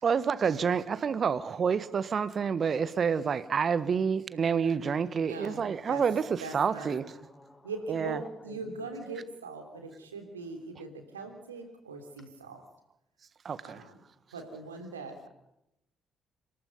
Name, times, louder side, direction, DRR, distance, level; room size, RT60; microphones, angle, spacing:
voice 1, 0.0-7.1 7.9-8.2 13.4-13.8, right 6 dB, 45° right, 1.3 m, -28 dB
voice 2, 5.2-6.0 6.4-7.0 7.6-12.6 13.6-14.0 14.3-15.3, right 3 dB, 85° right, 3.2 m, -41 dB
voice 3, 7.0-7.7 8.2-8.9, left 2 dB, 15° left, 7.0 m, -52 dB
27.0 x 23.0 x 5.4 m
figure-of-eight pair, 45°, 0 cm